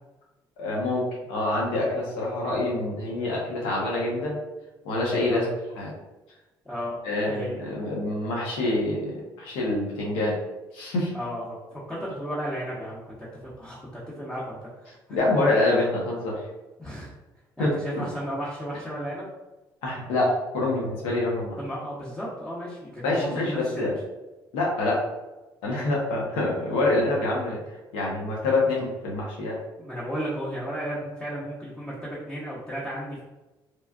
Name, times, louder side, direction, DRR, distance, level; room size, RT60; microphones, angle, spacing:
voice 1, 0.6-4.4 4.8-5.5 5.8-5.9 7.0-10.4 10.7-11.1 15.1-16.3 17.6-18.0 19.8-21.6 23.0-23.9 24.5-25.0 25.6-27.6 27.9-29.6, left 2 dB, 90° left, -3 dB, 0.8 m, -26 dB
voice 2, 6.6-7.0 7.3-7.6 11.1-11.4 11.7-15.2 16.8-17.1 17.6-19.3 21.6-23.9 29.8-33.2, equal, 10° left, -8 dB, 0.8 m, -34 dB
3.1 x 2.3 x 2.4 m, 1.1 s
supercardioid pair, 80°, 9 cm